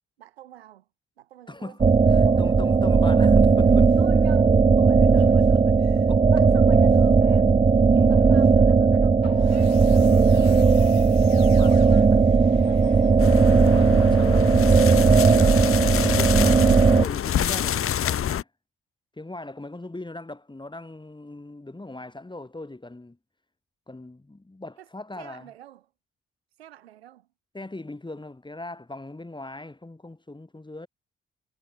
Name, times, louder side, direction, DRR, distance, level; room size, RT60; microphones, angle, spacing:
voice 1, 0.2-0.9 1.2-2.7 3.0-3.4 4.0-7.5 8.0-11.0 11.6-13.1 24.8-24.9 25.1-25.9 26.6-27.3, right 12 dB, 85° right, 4.8 m, -47 dB
voice 2, 1.5-4.0 6.1-6.3 7.9-8.7 10.3-10.7 11.4-11.8 13.6-15.7 16.0-18.5 19.2-23.2 23.9-25.5 27.5-30.9, left 2 dB, 15° left, 3.2 m, -40 dB
sound 1, 1.8-17.0, right 5 dB, 20° right, 0.7 m, -17 dB
sound 2, 3.5-4.0 5.0-5.6 6.5-7.1 8.0-8.6 9.2-13.6, left 19 dB, 80° left, 3.2 m, -43 dB
sound 3, 13.2-18.4, left 10 dB, 45° left, 1.1 m, -27 dB
figure-of-eight pair, 40°, 30 cm